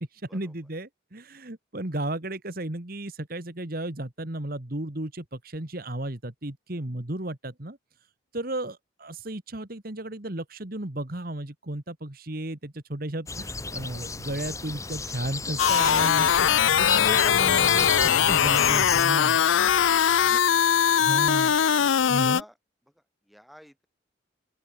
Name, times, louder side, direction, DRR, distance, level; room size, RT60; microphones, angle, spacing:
voice 1, 0.1-7.8 8.3-19.4 20.1-20.4 21.0-21.6 22.1-22.4, right 1 dB, 50° right, 1.9 m, -34 dB
sound 1, 13.3-19.0, left 4 dB, 15° left, 1.7 m, -32 dB
sound 2, 15.6-22.4, left 8 dB, 80° left, 0.5 m, -21 dB
voice 2, 22.0-22.5 23.3-23.9, equal, ahead, 4.8 m, -52 dB
open air
head